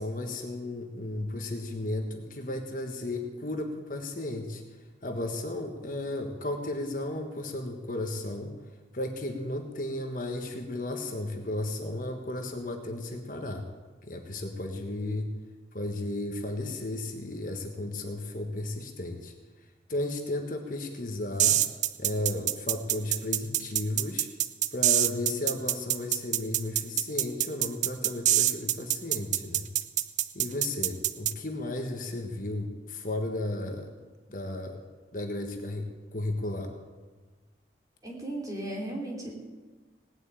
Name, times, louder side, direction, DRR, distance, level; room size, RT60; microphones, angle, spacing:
voice 1, 0.0-4.6 5.0-8.6 8.9-13.7 14.0-15.3 15.7-19.3 19.9-21.6 22.0-24.3 24.7-29.7 30.3-33.9 34.3-34.8 35.1-36.7, left 2 dB, 45° left, 3 dB, 1.5 m, -34 dB
sound 1, 21.4-31.3, right 12 dB, 40° right, 0.5 m, -25 dB
voice 2, 38.0-39.3, right 1 dB, 20° right, -1 dB, 3.3 m, -35 dB
18.0 x 8.0 x 9.1 m, 1.3 s
head